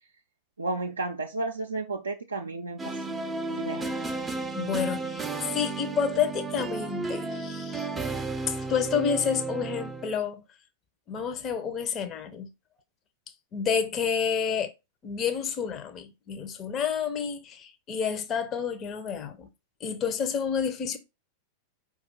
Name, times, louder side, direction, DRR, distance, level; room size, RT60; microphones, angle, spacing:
voice 1, 0.6-3.2 3.5-4.0, right 3 dB, 75° right, 0.4 m, -33 dB
sound 1, 2.8-10.2, right 3 dB, 15° right, 0.5 m, -33 dB
voice 2, 4.5-7.9 8.5-10.4 11.1-12.5 13.5-14.7 15.0-19.5 19.8-21.0, left 7 dB, 30° left, 0.6 m, -29 dB
4.9 x 2.4 x 4.5 m
figure-of-eight pair, 90°, 0 cm